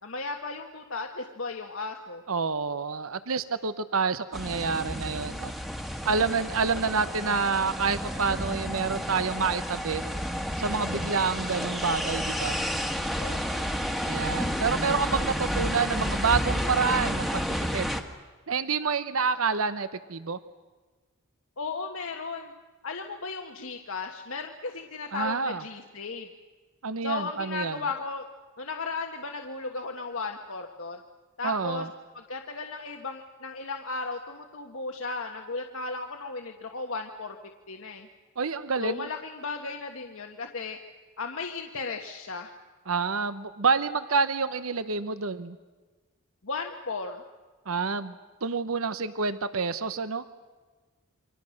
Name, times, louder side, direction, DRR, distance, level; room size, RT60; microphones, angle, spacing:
voice 1, 0.0-2.2 6.2-6.4 13.2-13.7 21.6-22.5 22.8-26.3 27.0-28.2 28.6-31.0 31.4-31.9 32.1-37.4 37.7-38.1 38.8-40.8 41.2-42.5 46.4-47.2, left 4 dB, 70° left, 3 dB, 1.4 m, -35 dB
voice 2, 2.3-5.5 6.0-10.0 10.6-12.6 14.1-17.4 17.7-18.0 18.5-20.4 25.1-25.6 26.8-27.8 31.4-31.9 38.4-39.1 42.9-45.6 47.7-50.2, right 5 dB, 75° right, 13 dB, 0.9 m, -28 dB
sound 1, 4.3-18.0, equal, ahead, 1.5 m, -31 dB
28.5 x 24.5 x 6.5 m, 1.3 s
head